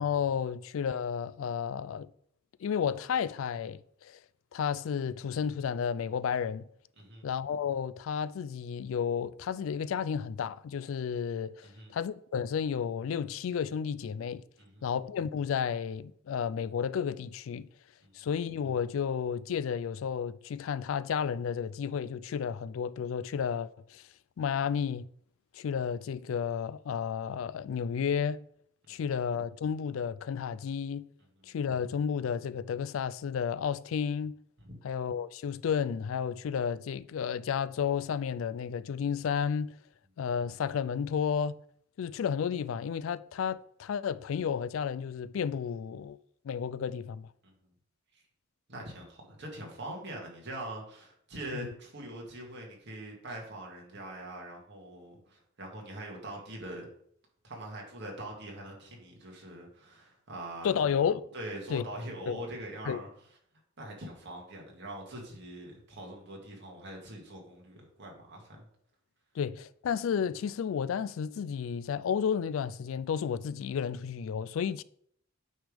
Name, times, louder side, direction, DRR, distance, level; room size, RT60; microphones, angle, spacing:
voice 1, 0.0-2.1 2.6-4.2 4.5-6.6 7.2-14.4 14.8-17.7 18.1-24.0 24.4-25.1 25.5-28.4 28.9-31.1 31.5-34.4 34.8-39.8 40.2-41.6 42.0-46.2 46.4-47.3 60.6-61.3 61.7-61.8 62.3-62.4 62.9-63.0 69.4-74.8, left 7 dB, 70° left, 0.3 m, -32 dB
voice 2, 7.0-7.3 11.6-11.9 14.6-14.9 18.0-18.3 28.9-29.0 34.6-34.8 47.4-47.5 48.1-48.2 48.7-56.9 57.4-61.1 61.3-63.1 63.8-68.6, right 1 dB, 60° right, 1.9 m, -43 dB
9.0 x 3.5 x 5.0 m
head